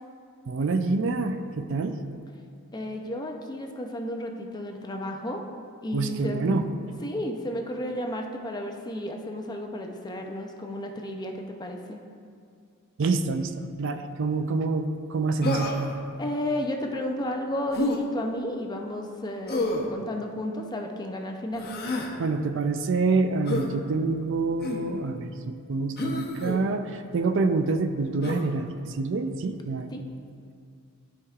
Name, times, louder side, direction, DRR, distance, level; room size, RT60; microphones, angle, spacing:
voice 1, 0.5-2.0 5.9-6.6 13.0-13.5 13.8-15.8 22.2-30.0, right 3 dB, 60° right, 8 dB, 0.4 m, -27 dB
voice 2, 2.7-5.4 5.8-6.6 7.0-12.0 16.2-21.7 29.9-30.0, left 1 dB, 20° left, 3 dB, 0.5 m, -33 dB
Human voice, 15.4-16.0 17.7-18.0 19.5-19.9 21.5-22.1 23.5-23.7 24.6-24.9 26.0-26.6 28.2-28.5, left 1 dB, 50° left, 0.9 m, -29 dB
13.0 x 4.7 x 2.4 m, 2.2 s
head